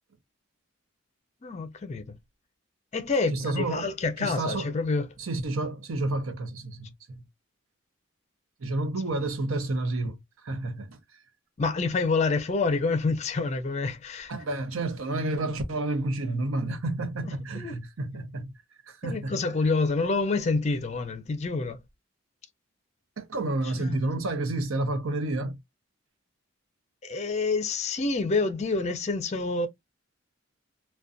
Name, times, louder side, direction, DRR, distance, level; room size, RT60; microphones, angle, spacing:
voice 1, 1.4-2.2 2.9-5.1 11.6-14.3 17.5-17.8 19.0-21.8 23.6-24.0 27.0-29.7, left 3 dB, 35° left, 0.4 m, -27 dB
voice 2, 3.3-3.9 4.2-4.7 5.2-7.2 8.6-11.0 14.3-18.5 18.8-19.3 23.2-25.6, right 2 dB, 80° right, 0.7 m, -30 dB
2.4 x 2.2 x 2.5 m
head